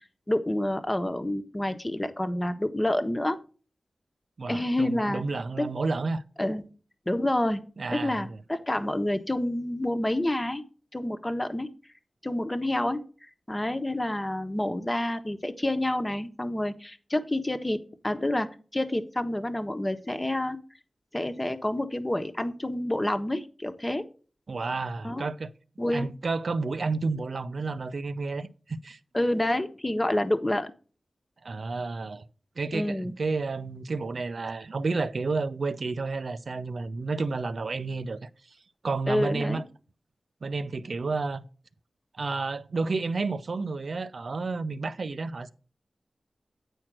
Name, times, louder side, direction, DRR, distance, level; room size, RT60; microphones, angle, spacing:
voice 1, 0.3-3.4 4.5-5.3 5.6-5.7 6.4-6.6 7.1-7.6 7.9-10.6 10.9-11.7 12.2-13.0 13.5-17.8 18.0-18.5 18.7-20.6 21.1-24.0 25.0-25.3 25.8-26.1 29.1-30.7 32.7-33.1 39.1-39.6, left 1 dB, 25° left, 1.1 m, -28 dB
voice 2, 4.4-6.2 7.8-8.4 24.5-25.5 25.9-29.0 31.4-32.2 32.6-38.6 38.8-39.6 40.4-41.4 42.2-45.5, right 3 dB, 70° right, 0.6 m, -31 dB
8.9 x 4.5 x 6.1 m
cardioid pair, 50°, 0 cm